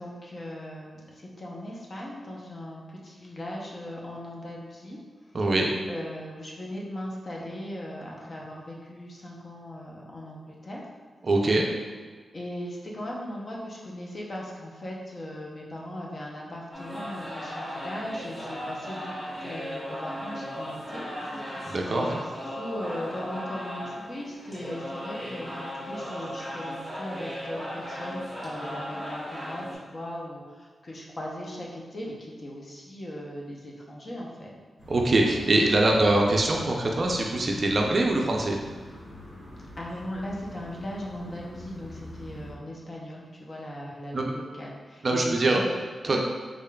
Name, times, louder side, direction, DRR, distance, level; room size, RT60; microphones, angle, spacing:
voice 1, 0.0-5.0 5.4-5.5 5.9-10.9 12.3-21.0 21.4-22.2 22.5-34.5 39.8-45.6 46.1-46.2, left 1 dB, 40° left, -3 dB, 0.6 m, -38 dB
voice 2, 5.3-5.7 11.2-11.7 21.7-22.2 34.9-38.6 44.1-44.3 45.0-45.6 46.0-46.2, right 2 dB, 40° right, 0 dB, 0.4 m, -23 dB
sound 1, 16.7-29.8, equal, 5° right, 1.0 m, -36 dB
sound 2, 34.8-42.5, left 1 dB, 55° left, 1.5 m, -44 dB
3.7 x 3.5 x 2.2 m, 1.5 s
wide cardioid pair, 135°, 0 cm